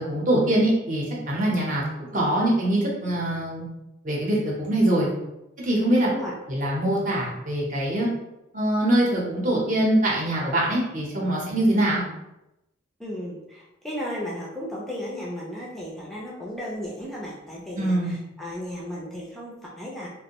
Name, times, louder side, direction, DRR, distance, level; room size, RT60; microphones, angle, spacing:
voice 1, 0.0-3.7 4.0-5.1 5.6-6.1 6.5-8.1 8.5-12.0 17.7-18.2, right 1 dB, 40° right, -4 dB, 0.7 m, -23 dB
voice 2, 13.0-20.1, equal, ahead, -5 dB, 0.4 m, -35 dB
2.5 x 2.0 x 2.8 m, 0.90 s
head